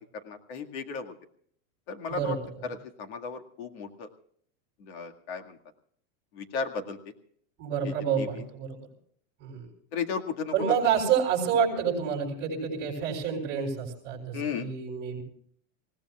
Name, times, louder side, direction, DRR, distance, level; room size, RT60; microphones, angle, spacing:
voice 1, 0.1-1.1 1.9-2.4 2.6-4.1 4.8-5.6 6.3-7.0 7.8-8.4 9.9-10.5 14.3-14.7, left 5 dB, 50° left, 5 dB, 2.1 m, -35 dB
voice 2, 7.6-8.8 9.4-9.6 10.5-15.2, right 7 dB, 25° right, -2 dB, 7.5 m, -28 dB
28.0 x 17.5 x 2.4 m, 0.63 s
supercardioid pair, 175°, 40 cm